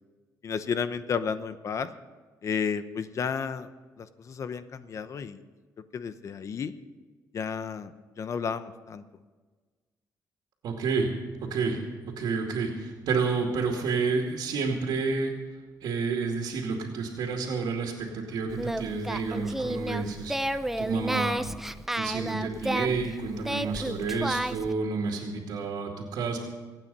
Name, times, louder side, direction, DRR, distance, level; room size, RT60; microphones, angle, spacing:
voice 1, 0.4-1.9 2.4-3.7 4.0-5.4 5.9-6.7 7.3-7.9 8.2-9.0, left 6 dB, 45° left, 12 dB, 0.9 m, -32 dB
voice 2, 10.6-11.1 11.5-11.8 12.2-15.3 15.8-20.4 20.8-21.4 22.0-26.4, right 4 dB, 75° right, 0 dB, 2.3 m, -29 dB
Singing, 18.5-24.7, right 1 dB, 5° right, 0.5 m, -32 dB
24.5 x 9.1 x 5.5 m, 1.4 s
cardioid pair, 135°, 7 cm